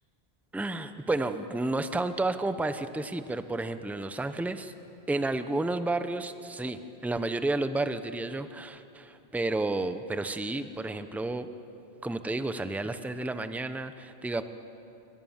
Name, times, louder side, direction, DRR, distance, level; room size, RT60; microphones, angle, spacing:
voice 1, 0.5-4.7 5.1-11.5 12.0-14.4, right 2 dB, ahead, 10 dB, 0.7 m, -31 dB
28.0 x 24.5 x 7.3 m, 2.9 s
omnidirectional pair, 1.1 m